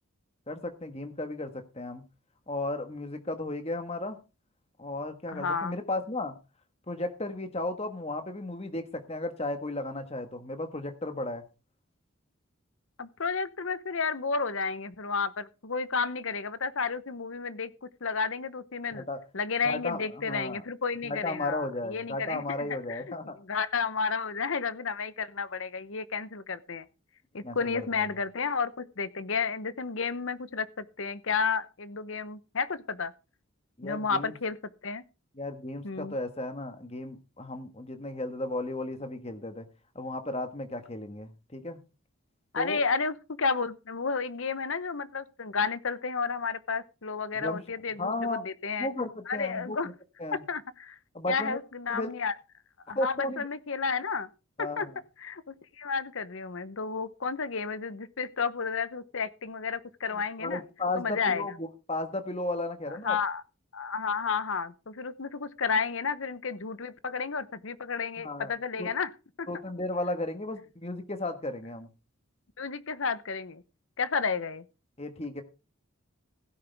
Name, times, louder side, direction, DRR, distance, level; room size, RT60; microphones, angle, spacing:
voice 1, 0.5-2.0 2.5-4.2 4.8-6.3 6.9-11.4 18.9-19.2 19.6-20.6 21.0-23.4 27.4-28.1 33.8-34.3 35.4-39.7 39.9-41.8 42.5-42.8 47.3-47.6 48.0-48.4 48.8-49.8 50.2-50.4 51.1-51.6 51.9-52.1 52.9-53.5 54.6-54.9 60.4-63.2 68.2-68.5 68.8-68.9 69.5-71.9 75.0-75.4, left 2 dB, 30° left, 1.5 m, -34 dB
voice 2, 5.3-5.8 13.0-19.0 19.3-23.1 23.5-26.8 27.3-33.1 33.8-34.6 34.8-35.0 35.8-36.1 42.5-48.9 49.3-49.9 50.3-51.0 51.3-52.3 52.9-54.3 54.6-54.9 55.2-60.6 61.0-61.5 62.9-63.4 63.7-69.1 69.4-69.5 72.6-73.6 74.0-74.6, left 5 dB, 65° left, 0.8 m, -32 dB
16.0 x 9.8 x 3.5 m
head